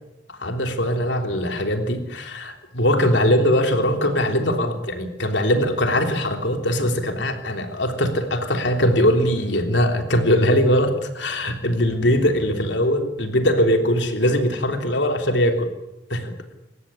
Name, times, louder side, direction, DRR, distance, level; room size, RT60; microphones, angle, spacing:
voice 1, 0.4-15.7 16.1-16.3, equal, 70° left, 5 dB, 3.4 m, -21 dB
26.5 x 15.0 x 10.0 m, 0.94 s
head